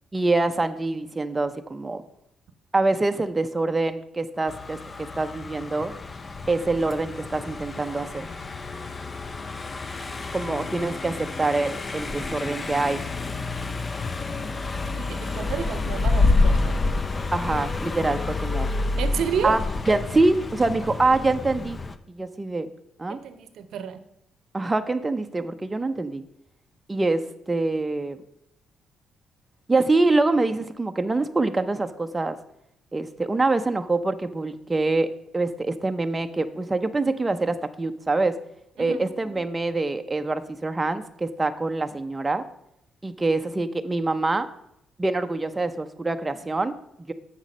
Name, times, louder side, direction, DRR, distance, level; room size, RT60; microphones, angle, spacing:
voice 1, 0.1-2.0 2.7-5.9 6.5-8.2 10.3-13.0 17.3-18.7 19.4-19.6 19.9-21.8 22.1-22.7 23.0-23.2 24.5-26.2 26.9-28.2 29.7-32.4 32.9-35.1 35.3-38.3 38.8-42.4 43.0-44.5 45.0-46.7 47.1-47.2, right 2 dB, 20° right, 7 dB, 0.5 m, -25 dB
Car passing by, 4.5-22.0, left 3 dB, 30° left, 0.5 m, -28 dB
voice 2, 15.0-16.8 19.0-19.6 23.1-24.0 38.8-39.0, right 7 dB, 75° right, 11 dB, 0.7 m, -31 dB
7.3 x 5.8 x 5.2 m, 0.79 s
cardioid pair, 90°, 0 cm